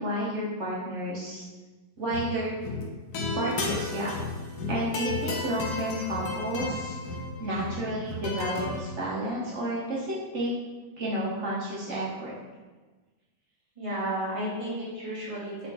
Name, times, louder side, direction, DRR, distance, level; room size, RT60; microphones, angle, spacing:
voice 1, 0.0-1.4 2.0-2.5 3.3-4.1 4.7-7.0 7.4-10.5 11.0-12.3, right 1 dB, 55° right, -6 dB, 0.9 m, -31 dB
sound 1, 2.0-2.3 2.6-8.8, left 3 dB, 80° left, 1.2 m, -33 dB
voice 2, 13.8-15.7, right 1 dB, 25° right, -8 dB, 1.2 m, -32 dB
4.1 x 3.9 x 2.8 m, 1.3 s
omnidirectional pair, 1.7 m